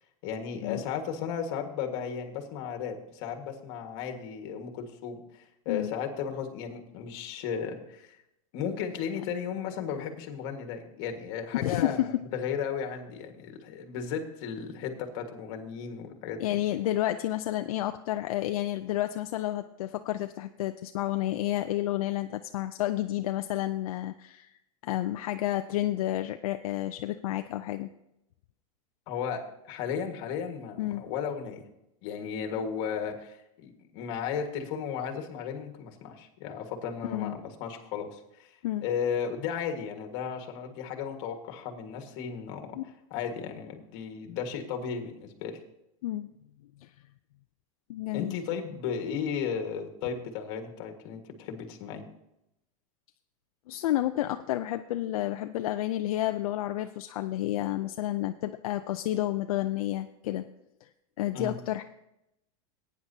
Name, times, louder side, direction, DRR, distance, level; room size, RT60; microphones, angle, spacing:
voice 1, 0.2-8.2 8.5-16.4 29.1-31.6 32.0-42.8 43.1-45.6 48.1-52.1 61.3-61.6, left 7 dB, 50° left, 4 dB, 1.7 m, -35 dB
voice 2, 11.5-12.2 16.4-24.5 24.8-27.9 30.8-31.0 37.0-37.4 38.6-38.9 42.8-42.9 46.0-46.3 46.8-46.9 47.9-48.3 53.7-60.5 60.8-60.9 61.2-61.8, left 14 dB, 75° left, 7 dB, 0.5 m, -30 dB
18.0 x 9.4 x 2.8 m, 0.86 s
supercardioid pair, 155°, 18 cm